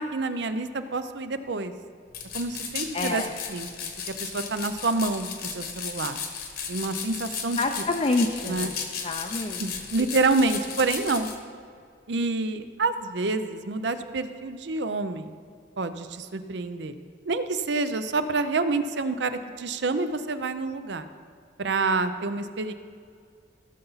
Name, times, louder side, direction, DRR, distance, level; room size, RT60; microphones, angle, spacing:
voice 1, 0.0-1.7 2.3-3.2 3.5-3.7 4.2-6.2 6.7-7.6 8.4-8.7 9.6-11.3 12.1-15.3 15.8-16.9 17.3-21.0 21.6-22.7, right 3 dB, 70° right, 10 dB, 0.6 m, -27 dB
sound 1, 2.1-11.4, left 6 dB, 50° left, 1.1 m, -35 dB
voice 2, 2.9-3.3 7.6-8.8 9.0-9.6, left 2 dB, 30° left, 3 dB, 0.5 m, -27 dB
16.0 x 6.9 x 4.0 m, 2.2 s
head